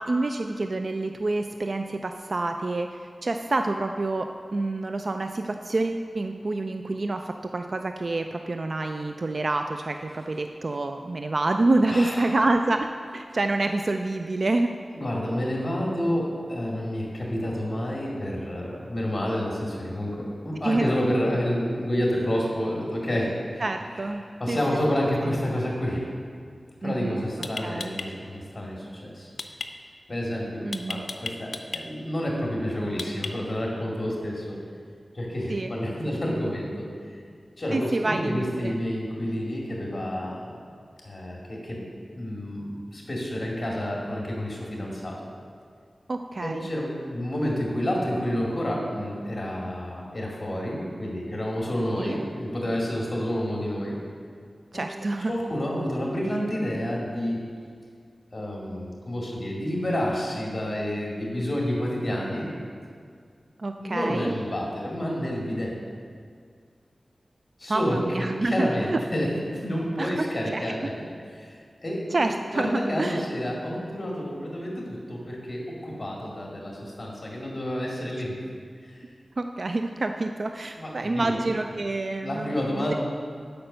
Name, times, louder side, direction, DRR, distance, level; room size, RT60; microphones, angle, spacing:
voice 1, 0.0-14.7 20.6-20.8 23.6-24.6 26.8-27.2 27.6-27.9 30.6-31.1 35.5-35.7 37.7-38.8 46.1-46.7 52.0-52.2 54.7-55.3 63.6-64.3 67.7-69.0 70.0-70.1 70.5-70.9 72.1-73.3 79.4-82.9, right 2 dB, 55° right, 6 dB, 0.3 m, -27 dB
voice 2, 11.9-12.3 14.9-23.6 24.4-26.1 26.8-29.3 30.1-34.6 35.1-36.9 37.6-40.6 41.0-41.8 42.1-45.2 46.4-54.0 54.7-54.8 55.3-57.4 58.3-62.5 63.8-65.7 67.6-70.9 71.3-71.5 71.8-72.2 72.5-78.3 78.9-79.0 80.8-81.4 82.2-83.0, equal, 35° left, -3 dB, 2.3 m, -29 dB
sound 1, 26.8-26.9 27.4-28.1 29.4-29.7 30.7-31.8 33.0-33.6, left 4 dB, 75° left, 0.5 m, -33 dB
8.7 x 5.3 x 6.7 m, 2.1 s
wide cardioid pair, 75°, 0 cm